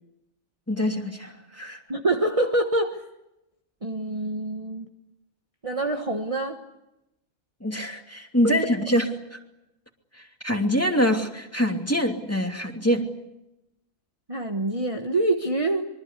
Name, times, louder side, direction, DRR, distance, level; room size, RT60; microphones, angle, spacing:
voice 1, 0.7-1.8 7.6-9.1 9.3-9.4 10.4-13.1, equal, 10° left, 2.7 m, -24 dB
voice 2, 1.9-3.0 3.8-4.9 5.6-6.6 8.4-8.5 14.3-15.9, right 2 dB, 25° right, 1.4 m, -25 dB
26.0 x 24.0 x 8.3 m
omnidirectional pair, 1.5 m